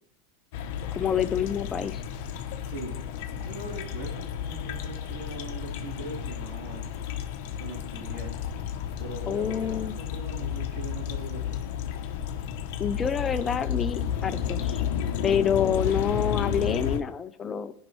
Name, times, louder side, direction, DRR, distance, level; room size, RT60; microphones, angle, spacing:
sound 1, 0.5-17.0, left 9 dB, 60° left, 0.8 m, -32 dB
voice 1, 0.9-2.0 9.3-9.9 12.8-14.8 15.2-17.7, left 7 dB, 20° left, 11 dB, 0.5 m, -27 dB
voice 2, 2.6-3.0 3.3-7.0 7.6-8.3 9.0-11.6, right 2 dB, 55° right, -4 dB, 3.7 m, -41 dB
14.0 x 5.4 x 3.2 m, 0.72 s
supercardioid pair, 125°, 0 cm